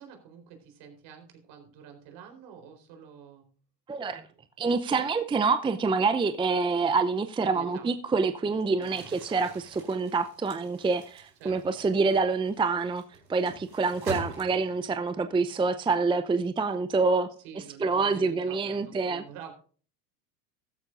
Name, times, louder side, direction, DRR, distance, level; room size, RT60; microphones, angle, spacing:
voice 1, 0.0-3.5 7.4-7.9 8.8-9.1 11.4-11.9 17.4-19.5, right 7 dB, 55° right, 4.1 m, -48 dB
voice 2, 3.9-4.2 4.6-13.0 13.3-17.3 17.8-19.2, right 4 dB, 10° right, 0.6 m, -26 dB
Crumpling crinkling, 8.7-14.9, right 3 dB, 80° right, 4.7 m, -44 dB
15.0 x 13.5 x 2.5 m
hypercardioid pair, 80°, 50 cm